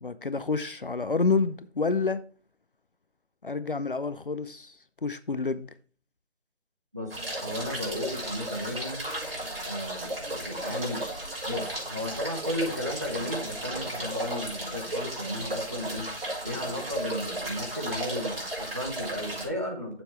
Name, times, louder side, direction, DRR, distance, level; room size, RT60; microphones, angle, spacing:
voice 1, 0.0-2.2 3.4-4.8 5.0-5.7, left 4 dB, 55° left, 0.6 m, -28 dB
sound 1, 7.1-19.5, right 1 dB, 55° right, 4.3 m, -34 dB
voice 2, 7.4-9.0 9.6-11.0 11.5-20.0, left 1 dB, 15° right, 0.8 m, -34 dB
8.8 x 7.1 x 3.1 m
figure-of-eight pair, 160°, 33 cm